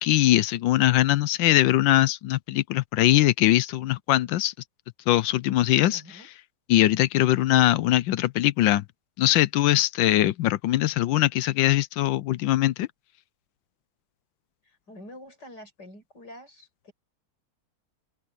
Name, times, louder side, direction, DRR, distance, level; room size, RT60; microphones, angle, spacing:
voice 1, 0.0-4.5 5.1-6.0 6.7-8.8 9.2-12.9, left 14 dB, 70° left, 1.2 m, -21 dB
voice 2, 5.9-6.3 14.6-16.9, left 1 dB, 50° left, 7.0 m, -46 dB
open air
omnidirectional pair, 2.4 m